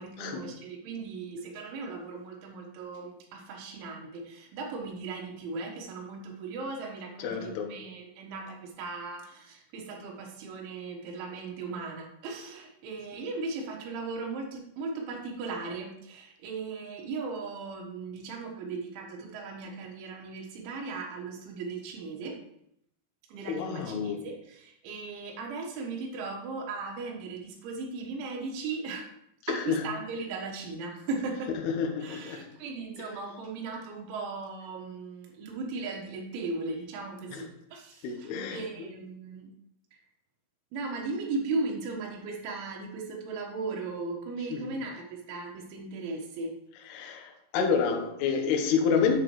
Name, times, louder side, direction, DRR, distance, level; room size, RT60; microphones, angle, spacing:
voice 1, 0.0-22.4 23.3-29.1 29.5-31.5 32.0-39.5 39.9-40.0 40.7-46.6, right 3 dB, 70° right, 1 dB, 3.6 m, -37 dB
voice 2, 7.2-7.8 23.5-24.3 29.5-29.8 31.6-32.5 37.3-37.4 38.0-38.6 44.5-44.7 46.9-49.2, left 6 dB, 70° left, 4 dB, 2.6 m, -29 dB
9.5 x 9.2 x 3.1 m, 0.75 s
omnidirectional pair, 5.9 m